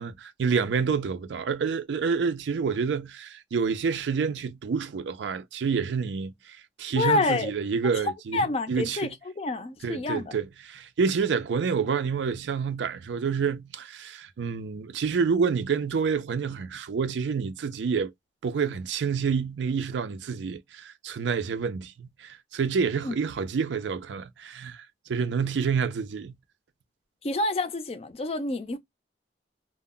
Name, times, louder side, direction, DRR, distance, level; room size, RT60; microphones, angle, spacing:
voice 1, 0.0-9.1 9.8-18.1 18.4-26.4, right 5 dB, 85° right, 0.4 m, -28 dB
voice 2, 7.0-7.5 8.3-9.1 9.4-10.4 23.0-23.2 27.2-28.8, left 2 dB, 35° left, 0.4 m, -27 dB
2.1 x 2.0 x 3.6 m
head